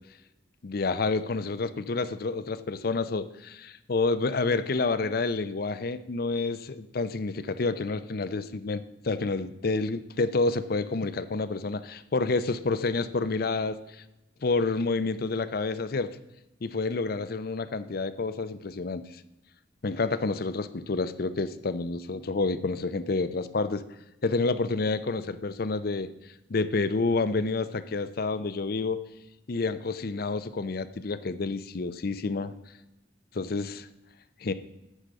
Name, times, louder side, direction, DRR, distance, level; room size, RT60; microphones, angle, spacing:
voice 1, 0.6-13.8 14.4-16.2 16.6-19.0 19.8-23.8 24.2-26.1 26.5-29.0 29.5-32.5 33.4-33.9 34.4-34.5, left 3 dB, 55° left, 13 dB, 0.6 m, -29 dB
10.0 x 4.9 x 6.6 m, 0.95 s
head